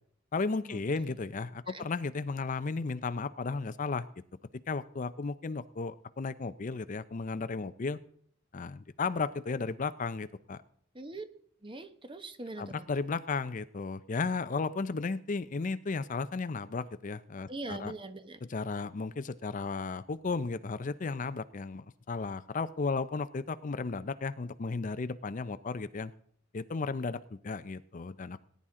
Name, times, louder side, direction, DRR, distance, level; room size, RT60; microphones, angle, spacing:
voice 1, 0.3-4.1 4.7-8.0 8.5-10.6 12.6-17.9 18.5-26.1 26.5-28.4, left 4 dB, 40° left, 14 dB, 0.5 m, -34 dB
voice 2, 10.9-11.2 11.6-12.9 17.5-18.4, right 2 dB, 25° right, 10 dB, 1.0 m, -42 dB
18.5 x 10.5 x 3.7 m, 0.63 s
head